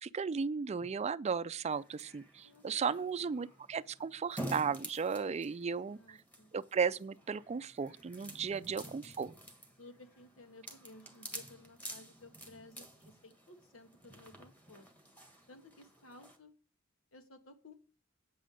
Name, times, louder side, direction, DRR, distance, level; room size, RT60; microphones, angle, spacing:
voice 1, 0.0-6.2 6.5-9.3, right 6 dB, 35° right, 0.4 m, -35 dB
sound 1, 1.7-16.4, right 1 dB, 10° left, 1.7 m, -50 dB
voice 2, 2.4-3.4 5.6-6.5 8.6-8.9 9.8-14.9 15.5-16.5 17.1-17.7, left 2 dB, 90° left, 1.5 m, -57 dB
8.5 x 5.2 x 7.6 m
head